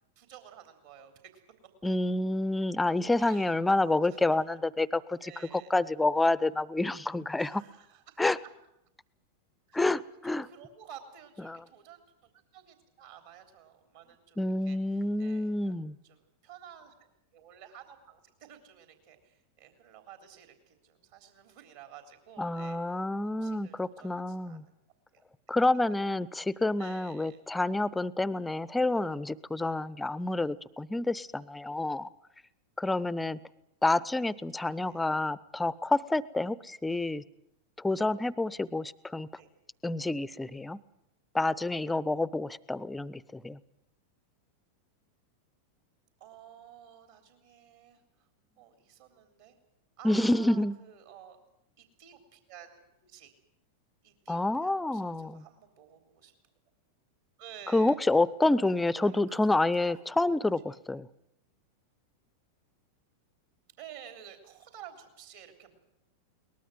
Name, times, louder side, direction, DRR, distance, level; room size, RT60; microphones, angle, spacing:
voice 1, 0.2-1.4 3.2-4.4 5.2-5.7 7.4-8.5 9.7-9.8 10.1-14.8 15.2-15.7 16.0-16.2 16.4-16.9 17.3-24.7 25.1-25.6 26.8-27.4 34.5-35.0 39.4-39.5 46.2-48.0 48.6-49.6 50.0-51.4 51.8-53.3 54.0-56.3 57.4-58.0 58.7-60.0 63.8-65.8, right 9 dB, 55° right, 6 dB, 3.5 m, -52 dB
voice 2, 1.8-7.6 8.2-8.4 9.7-10.5 11.5-11.6 14.4-16.0 22.4-24.6 25.5-32.1 32.8-33.4 33.8-37.2 37.8-39.3 39.8-40.8 41.3-43.6 50.0-50.8 54.3-55.4 57.7-61.1, left 2 dB, 5° left, 19 dB, 0.8 m, -28 dB
22.5 x 19.5 x 7.9 m, 0.81 s
figure-of-eight pair, 90°, 0 cm